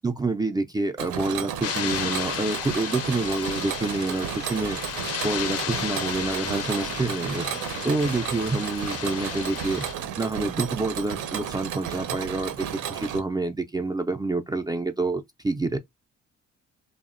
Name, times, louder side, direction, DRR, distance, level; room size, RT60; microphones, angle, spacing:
voice 1, 0.0-4.8 5.2-7.5 7.8-9.9 10.2-15.8, right 3 dB, 15° right, 0.3 m, -27 dB
Mechanisms, 1.0-13.2, right 9 dB, 75° right, 0.5 m, -33 dB
sound 1, 1.6-9.9, left 9 dB, 55° left, 0.5 m, -33 dB
2.8 x 2.0 x 2.4 m
cardioid pair, 90°, 30 cm